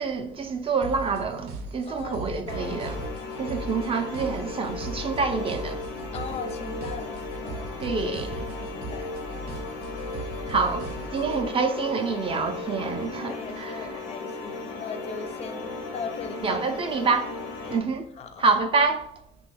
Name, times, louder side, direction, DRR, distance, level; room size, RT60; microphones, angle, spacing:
voice 1, 0.0-3.0 3.4-5.8 7.8-8.5 10.5-13.9 16.4-17.3 17.7-18.1 18.4-19.1, right 4 dB, 35° right, 0.3 m, -27 dB
sound 1, 0.8-11.5, right 2 dB, 80° right, 0.6 m, -38 dB
voice 2, 1.9-2.8 6.1-7.9 8.6-9.2 10.0-10.2 13.2-17.1 17.6-17.9 18.2-18.4, left 5 dB, 40° left, 0.4 m, -39 dB
sound 2, 2.5-17.8, left 3 dB, 85° left, 0.6 m, -36 dB
2.7 x 2.3 x 3.9 m
cardioid pair, 110°, 17 cm